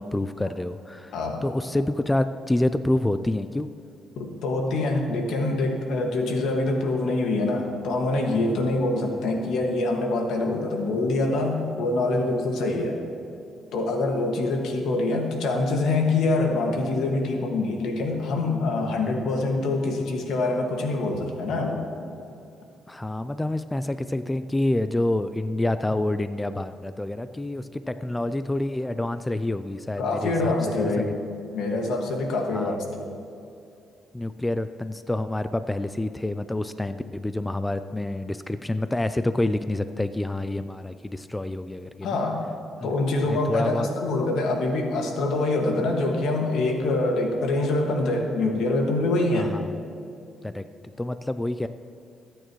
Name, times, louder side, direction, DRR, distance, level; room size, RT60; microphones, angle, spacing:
voice 1, 0.0-1.2 1.4-3.7 22.9-31.1 32.5-32.8 34.1-42.2 42.8-42.9 43.2-43.9 49.3-49.8 50.4-51.7, left 1 dB, 10° left, 11 dB, 0.4 m, -28 dB
voice 2, 1.1-1.4 4.2-13.0 13.7-21.9 30.0-31.1 31.5-33.1 42.0-42.5 42.8-49.5, left 2 dB, 80° left, 1 dB, 1.9 m, -25 dB
22.5 x 9.0 x 3.1 m, 2.6 s
cardioid pair, 90°, 0 cm